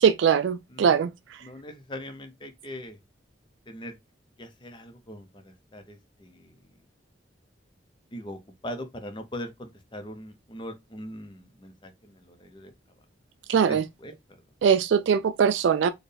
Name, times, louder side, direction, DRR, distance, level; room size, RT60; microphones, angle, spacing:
voice 1, 0.0-1.4 13.5-13.9 14.6-15.9, right 7 dB, 75° right, 0.3 m, -21 dB
voice 2, 1.4-3.0 3.7-4.0 4.4-6.6 8.1-12.7 13.7-14.1, left 1 dB, 25° left, 0.7 m, -41 dB
4.4 x 2.3 x 3.3 m
head